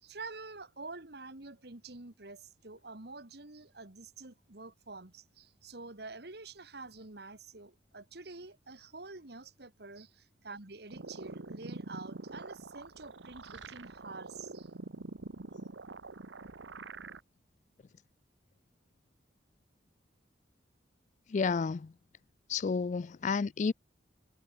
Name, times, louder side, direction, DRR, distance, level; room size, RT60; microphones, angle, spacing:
voice 1, 0.0-14.7, right 3 dB, 60° right, 2.0 m, -48 dB
sound 1, 10.9-17.2, right 3 dB, 80° right, 1.1 m, -45 dB
voice 2, 21.3-21.9 22.5-23.7, left 5 dB, 40° left, 0.3 m, -31 dB
head